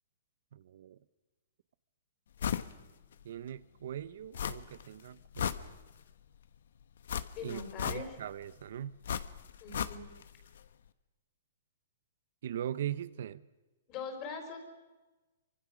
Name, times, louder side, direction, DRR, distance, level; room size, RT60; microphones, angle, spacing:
voice 1, 0.5-1.0 3.2-5.7 7.4-7.6 7.8-9.0 12.4-13.4, right 10 dB, 60° right, 0.7 m, -40 dB
sound 1, 2.4-2.7 3.1-3.2 4.3-4.9 5.2-6.1 7.1-8.3 9.0-10.3 10.6-10.7, left 8 dB, 70° left, 1.0 m, -36 dB
voice 2, 7.4-8.2 9.6-10.1 13.9-14.6, left 5 dB, 30° left, 4.3 m, -41 dB
26.0 x 24.5 x 6.2 m
hypercardioid pair, 160°, 0 cm